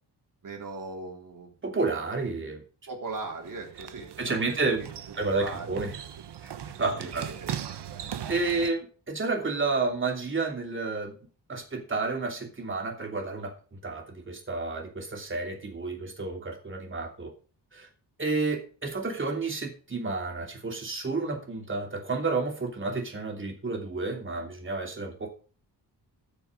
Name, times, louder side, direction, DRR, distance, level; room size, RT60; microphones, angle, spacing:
voice 1, 0.4-1.8 2.9-5.8 6.9-7.0 7.3-7.5, right 3 dB, 50° right, 1 dB, 3.6 m, -39 dB
voice 2, 1.6-2.6 4.2-4.9 5.2-5.9 6.4-6.5 6.8-7.3 8.3-11.1 11.5-17.3 17.7-17.9 18.2-25.3, right 3 dB, 30° right, 2 dB, 3.0 m, -30 dB
sound 1, 3.1-8.7, right 9 dB, 75° right, 1.2 m, -39 dB
13.5 x 6.9 x 5.2 m, 0.39 s
wide cardioid pair, 155°, 42 cm